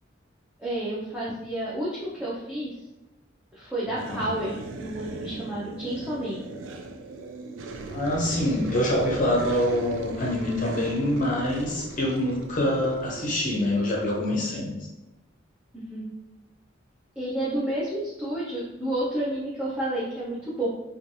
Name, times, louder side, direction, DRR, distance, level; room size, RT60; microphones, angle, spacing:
voice 1, 0.6-2.7 3.5-6.4 15.7-16.1 17.2-20.7, right 1 dB, 5° right, -9 dB, 0.6 m, -30 dB
voice 2, 3.9-4.2 7.9-14.7, left 1 dB, 45° left, -2 dB, 0.6 m, -25 dB
sound 1, 3.9-14.3, right 3 dB, 80° right, 0.4 m, -39 dB
3.1 x 2.3 x 2.6 m, 0.98 s
head